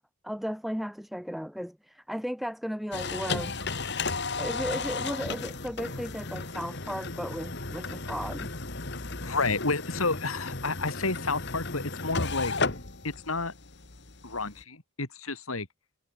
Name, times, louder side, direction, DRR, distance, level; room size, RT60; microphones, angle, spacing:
voice 1, 0.0-3.6 4.4-8.5, equal, ahead, 6.3 m, -35 dB
sound 1, 2.9-14.6, left 3 dB, 55° left, 2.3 m, -34 dB
voice 2, 9.2-12.5 13.0-13.5 14.2-15.7, left 3 dB, 80° left, 3.2 m, -30 dB
head